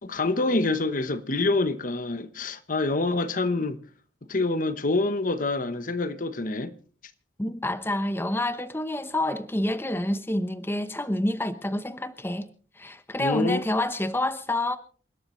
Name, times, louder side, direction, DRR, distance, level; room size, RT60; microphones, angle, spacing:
voice 1, 0.0-3.8 4.3-6.7 13.2-13.6, left 2 dB, 50° left, 1.0 m, -26 dB
voice 2, 7.4-12.5 12.8-14.8, left 1 dB, 15° left, 0.9 m, -28 dB
28.0 x 12.5 x 3.2 m
head